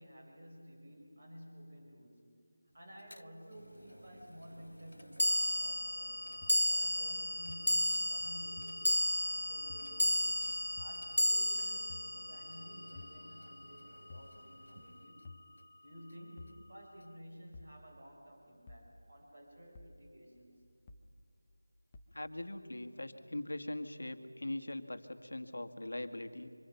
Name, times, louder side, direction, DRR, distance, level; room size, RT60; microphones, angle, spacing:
voice 1, 0.0-2.3 2.7-6.3 6.7-10.4 10.8-15.3 15.8-20.6, equal, 30° right, 0 dB, 5.0 m, -53 dB
sound 1, 3.1-3.2 5.2-13.6, left 1 dB, 65° left, 0.5 m, -33 dB
sound 2, 3.5-15.1, equal, 60° right, 3.5 m, -57 dB
sound 3, 6.4-6.5 7.5-7.6 8.6-8.7 9.7-9.9 10.8-10.9 11.9-12.1 12.9-13.2 14.1-14.3 15.2-15.5 16.4-16.6 17.5-17.8 18.7-18.9 19.7-20.0 20.9-21.1 21.9-22.1, left 3 dB, 10° left, 0.8 m, -51 dB
voice 2, 22.1-26.5, left 1 dB, 80° left, 7 dB, 2.0 m, -41 dB
29.0 x 25.5 x 5.9 m, 2.4 s
figure-of-eight pair, 180°, 0 cm